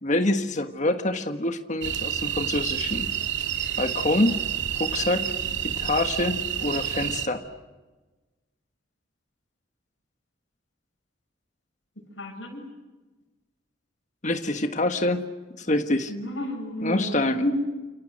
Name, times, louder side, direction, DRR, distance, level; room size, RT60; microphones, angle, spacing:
voice 1, 0.0-3.1 3.8-4.4 4.7-5.3 5.6-7.4 14.2-15.3 15.6-16.1 16.8-17.4, left 2 dB, 40° left, 7 dB, 1.6 m, -26 dB
sound 1, 1.8-7.3, right 10 dB, 70° right, 2.4 m, -29 dB
voice 2, 12.2-12.6 16.1-17.5, left 1 dB, 75° left, 3 dB, 7.9 m, -31 dB
30.0 x 28.0 x 6.6 m, 1.2 s
head